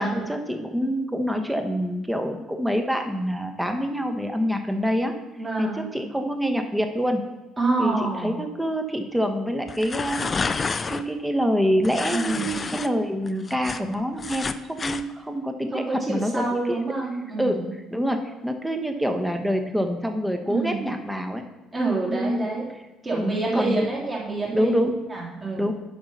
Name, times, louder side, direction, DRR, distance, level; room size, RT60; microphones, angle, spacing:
voice 1, 0.0-5.1 5.6-7.2 7.8-16.8 17.4-17.6 17.9-21.5 22.1-22.5 23.1-23.9 24.5-25.0 25.6-25.7, equal, 5° right, 5 dB, 1.2 m, -26 dB
voice 2, 5.4-5.9 7.6-8.4 12.1-12.6 15.7-17.7 20.5-20.9 21.7-22.7 23.0-24.7 25.1-25.7, right 3 dB, 25° right, -3 dB, 3.2 m, -27 dB
sound 1, 9.7-11.0 11.8-12.9 13.3-15.0, left 4 dB, 30° left, 0.5 m, -29 dB
8.6 x 5.8 x 5.6 m, 1.1 s
figure-of-eight pair, 50°, 0 cm